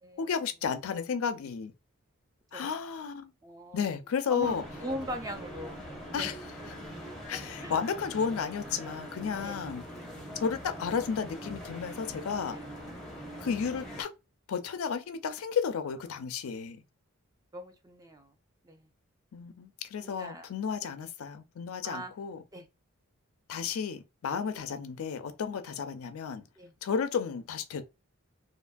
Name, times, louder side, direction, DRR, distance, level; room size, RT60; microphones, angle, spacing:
voice 1, 0.2-1.7 2.5-3.3 3.7-4.6 6.1-6.4 7.3-9.8 10.4-12.6 13.4-14.1 14.5-16.8 19.3-22.4 23.5-26.4 26.8-27.8, left 6 dB, 75° left, 0.4 m, -33 dB
voice 2, 3.4-3.8 4.3-5.8 6.1-6.3 7.6-7.7 9.4-9.6 12.5-12.7 17.5-18.3 18.6-18.9 20.2-20.5 21.8-22.1 22.5-22.6 26.6-26.7, equal, 15° right, 0.3 m, -40 dB
sound 1, 4.4-14.0, equal, ahead, 0.7 m, -43 dB
2.6 x 2.5 x 2.2 m
head